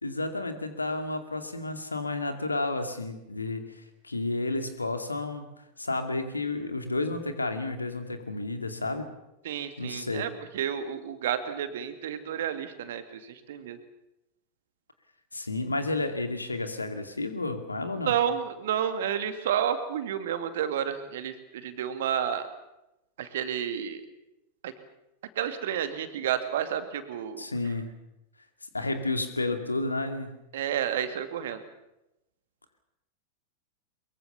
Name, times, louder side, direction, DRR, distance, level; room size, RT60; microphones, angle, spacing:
voice 1, 0.0-3.6 4.0-9.2 9.8-10.3 15.3-18.1 27.4-27.9 28.7-30.3, left 2 dB, 80° left, 8 dB, 2.4 m, -31 dB
voice 2, 9.4-13.8 18.1-22.5 23.2-24.0 24.6-24.7 25.4-27.4 30.5-31.6, right 9 dB, 55° right, 10 dB, 2.3 m, -30 dB
23.0 x 22.5 x 7.1 m, 0.91 s
figure-of-eight pair, 90°, 0 cm